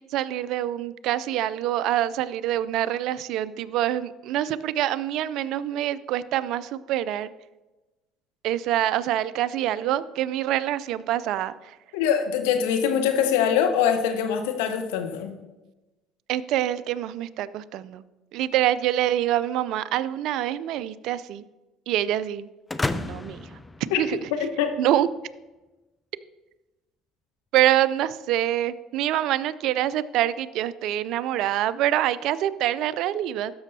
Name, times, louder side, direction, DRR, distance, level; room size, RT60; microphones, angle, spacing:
voice 1, 0.0-7.3 8.4-11.8 16.3-18.0 18.3-21.4 21.9-22.5 22.9-23.5 24.0-24.3 24.8-25.1 27.5-33.5, right 12 dB, 65° right, 17 dB, 0.3 m, -25 dB
voice 2, 11.9-15.4 23.9-24.0 24.4-24.7, left 8 dB, 80° left, 6 dB, 0.9 m, -23 dB
sound 1, 22.7-24.6, left 2 dB, 15° left, 0.5 m, -32 dB
12.5 x 6.2 x 2.7 m, 1.1 s
hypercardioid pair, 70°, 0 cm